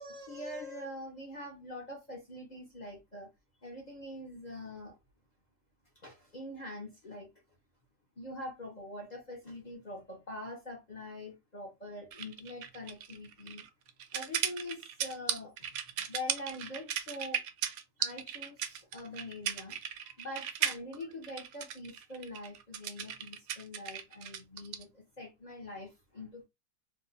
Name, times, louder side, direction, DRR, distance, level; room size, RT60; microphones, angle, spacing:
voice 1, 0.0-3.3 3.6-5.0 6.0-7.3 8.2-13.7 14.1-17.4 18.0-19.8 20.2-26.4, left 1 dB, 45° left, 0.5 m, -44 dB
sound 1, 12.1-24.8, right 9 dB, 70° right, 0.8 m, -36 dB
2.8 x 2.2 x 3.8 m
omnidirectional pair, 1.9 m